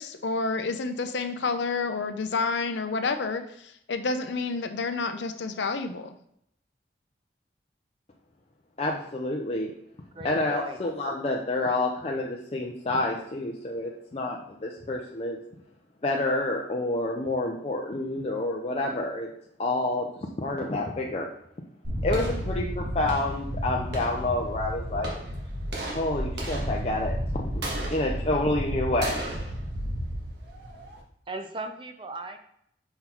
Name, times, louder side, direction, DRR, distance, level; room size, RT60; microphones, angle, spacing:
voice 1, 0.0-6.1, left 4 dB, 85° left, 8 dB, 0.6 m, -29 dB
voice 2, 8.8-9.7 10.2-15.4 16.0-19.3 19.6-21.3 22.0-25.1 25.9-27.5 27.9-29.4, left 2 dB, 35° left, 0 dB, 0.5 m, -28 dB
voice 3, 10.1-10.8 31.3-32.4, right 2 dB, 30° right, 6 dB, 0.6 m, -37 dB
sound 1, 21.8-31.0, equal, 75° right, 1.5 m, -32 dB
5.4 x 4.0 x 4.4 m, 0.71 s
head